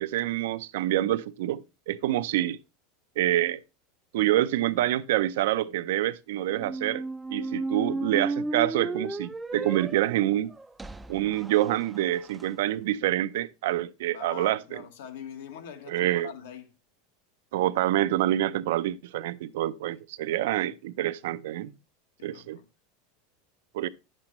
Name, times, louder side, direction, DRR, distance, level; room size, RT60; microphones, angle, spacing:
voice 1, 0.0-2.6 3.2-3.6 4.1-7.0 7.3-10.5 11.1-14.6 15.9-16.3 17.5-21.7 22.2-22.6 23.7-23.9, right 14 dB, 75° right, 0.5 m, -27 dB
sound 1, 6.5-12.4, right 3 dB, 10° right, 0.3 m, -34 dB
voice 2, 14.1-16.7 22.2-22.6, left 8 dB, 85° left, 1.4 m, -43 dB
9.7 x 7.4 x 3.0 m
supercardioid pair, 150°, 0 cm